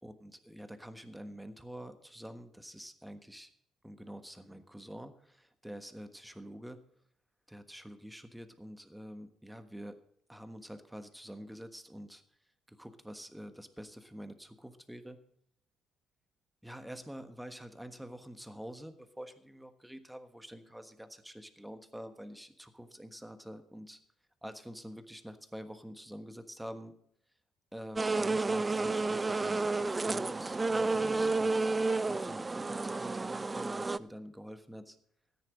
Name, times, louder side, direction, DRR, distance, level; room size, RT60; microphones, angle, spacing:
voice 1, 0.0-3.5 3.8-6.8 7.5-10.0 10.3-12.2 12.7-15.2 16.6-24.0 24.4-27.0 27.7-35.0, equal, 5° right, 8 dB, 1.4 m, -47 dB
sound 1, 28.0-34.0, right 3 dB, 25° right, 0.4 m, -31 dB
13.5 x 10.0 x 5.2 m, 0.67 s
supercardioid pair, 75°, 0 cm